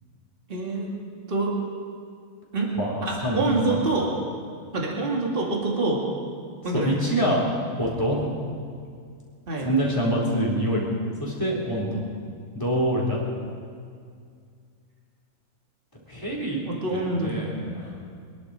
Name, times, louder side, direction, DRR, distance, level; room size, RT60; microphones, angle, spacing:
voice 1, 0.5-0.9 1.3-1.5 2.5-2.7 3.0-4.1 4.7-6.0 6.6-7.0 9.5-9.7 16.7-17.4, right 2 dB, 35° right, -2 dB, 2.5 m, -26 dB
voice 2, 2.8-3.4 3.7-3.8 6.7-7.4 7.8-8.2 9.6-10.8 11.2-12.1 12.5-13.2 16.1-16.6 16.9-17.9, equal, 15° left, -4 dB, 3.7 m, -25 dB
25.5 x 11.0 x 4.9 m, 2.2 s
omnidirectional pair, 1.6 m